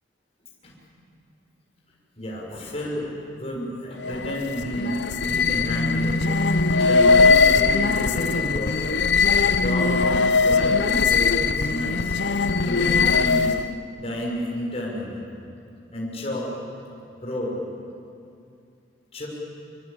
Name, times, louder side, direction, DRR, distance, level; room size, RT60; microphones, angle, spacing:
voice 1, 2.2-6.2 6.8-9.0 9.5-12.2 12.6-13.6 13.9-15.3 15.9-16.5 17.2-17.6 19.1-19.3, equal, 35° left, -3 dB, 6.7 m, -31 dB
sound 1, 4.0-13.7, left 4 dB, 75° left, 0.9 m, -20 dB
27.0 x 24.0 x 8.7 m, 2.5 s
head